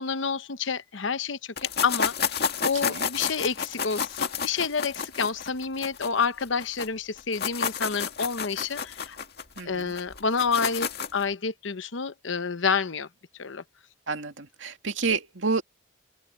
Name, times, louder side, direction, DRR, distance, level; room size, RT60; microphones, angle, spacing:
voice 1, 0.0-1.5 1.8-2.4 2.6-9.2 9.6-13.1 13.4-13.6, left 5 dB, 75° left, 0.9 m, -29 dB
sound 1, 1.6-6.9 7.2-11.2, left 6 dB, 55° left, 2.2 m, -30 dB
voice 2, 9.6-9.9 14.1-15.6, right 4 dB, 75° right, 2.5 m, -29 dB
head